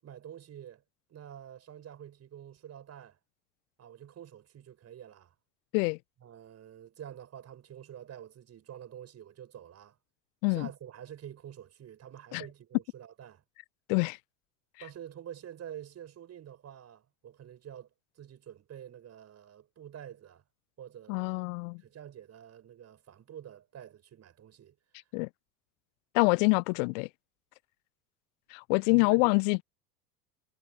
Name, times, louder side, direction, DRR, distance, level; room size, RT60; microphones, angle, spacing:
voice 1, 0.0-0.8 1.1-3.2 3.8-5.3 6.2-10.0 10.5-13.4 14.8-17.9 18.2-20.4 20.8-21.5 21.8-24.7 28.8-29.4, right 10 dB, 35° right, 5.8 m, -47 dB
voice 2, 21.1-21.8 25.1-25.3 26.1-27.1 28.5-29.6, left 35 dB, 50° left, 1.3 m, -26 dB
figure-of-eight pair, 70°, 47 cm